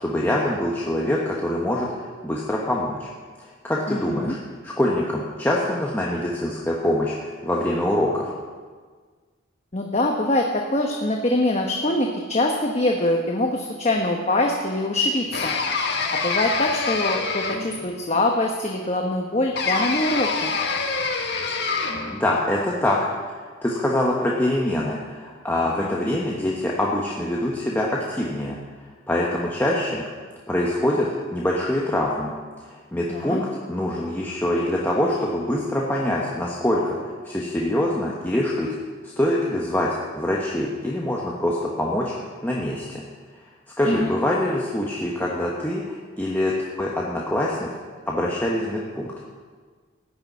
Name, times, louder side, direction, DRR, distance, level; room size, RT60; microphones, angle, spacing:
voice 1, 0.0-3.1 3.4-4.4 4.6-8.3 21.5-21.7 22.1-23.0 23.2-23.4 23.6-28.6 29.1-30.0 30.5-32.3 32.6-38.7 39.0-42.1 42.4-43.0 43.8-47.7 48.1-49.1, left 1 dB, 10° left, -4 dB, 1.2 m, -24 dB
voice 2, 3.9-4.3 9.7-15.6 16.1-20.5 26.0-26.1 33.1-33.4 43.8-44.1, left 1 dB, 35° left, 1 dB, 1.0 m, -24 dB
sound 1, 15.3-17.9 19.5-22.2, left 4 dB, 55° left, 1.5 m, -26 dB
15.0 x 6.8 x 9.4 m, 1.5 s
head